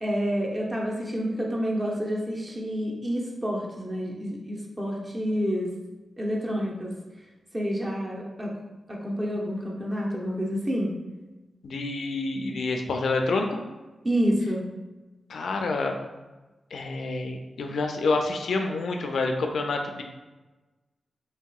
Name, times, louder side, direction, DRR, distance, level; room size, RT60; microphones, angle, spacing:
voice 1, 0.0-5.7 6.2-6.9 7.5-8.5 8.9-10.9 14.0-14.6, equal, 25° right, -2 dB, 0.7 m, -28 dB
voice 2, 11.6-13.6 15.3-16.0 16.7-20.0, left 3 dB, 85° left, 3 dB, 0.3 m, -28 dB
3.2 x 2.7 x 2.3 m, 1.1 s
cardioid pair, 80°, 0 cm